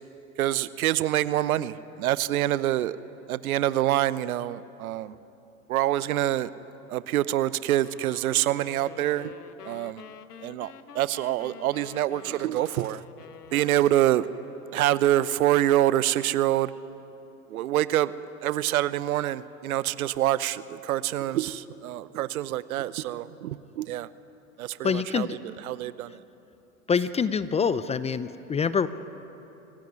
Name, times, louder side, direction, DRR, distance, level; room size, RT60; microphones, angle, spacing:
voice 1, 0.4-3.0 3.3-5.2 5.7-6.5 6.9-9.3 9.6-10.0 10.4-13.0 13.5-14.3 14.7-16.7 17.5-18.1 18.4-24.1 24.6-25.4 25.6-26.2, right 13 dB, 70° right, 17 dB, 0.9 m, -26 dB
sound 1, 7.8-15.0, left 7 dB, 85° left, 1.1 m, -48 dB
voice 2, 24.8-25.4 26.9-28.9, left 6 dB, 15° left, 14 dB, 0.6 m, -25 dB
25.0 x 17.0 x 9.7 m, 2.9 s
hypercardioid pair, 95°, 45 cm